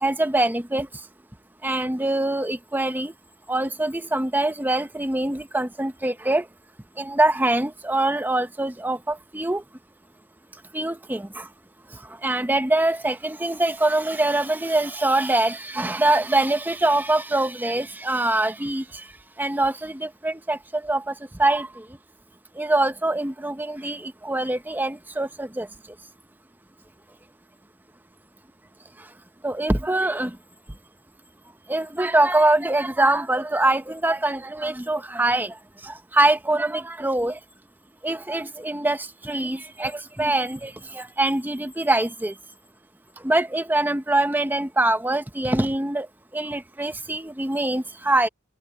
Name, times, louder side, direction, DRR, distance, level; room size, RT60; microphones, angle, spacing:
voice 1, 0.0-0.9 1.6-3.1 3.5-6.5 7.0-9.6 10.7-11.5 12.2-19.0 19.4-21.1 21.4-21.8 22.6-25.7 29.4-30.4 31.7-35.5 35.8-37.4 38.0-42.3 43.2-46.1 46.3-48.3, right 2 dB, 10° right, 0.8 m, -24 dB
head